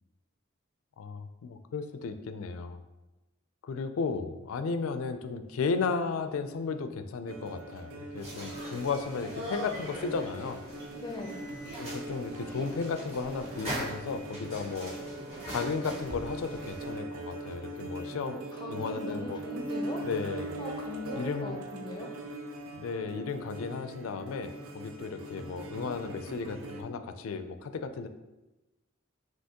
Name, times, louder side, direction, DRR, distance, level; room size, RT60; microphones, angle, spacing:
voice 1, 1.0-2.8 3.6-10.6 11.8-15.0 15.5-18.4 18.7-19.4 20.0-20.6 21.2-21.6 22.7-28.1, left 4 dB, 80° left, 9 dB, 0.4 m, -34 dB
sound 1, 7.3-26.8, right 1 dB, 85° right, 0.5 m, -41 dB
sound 2, 8.2-16.9, equal, 30° right, 1.4 m, -41 dB
voice 2, 10.9-11.4 18.3-20.0 20.6-22.1, left 2 dB, 20° left, 1 dB, 0.4 m, -40 dB
5.6 x 2.9 x 2.8 m, 1.0 s
head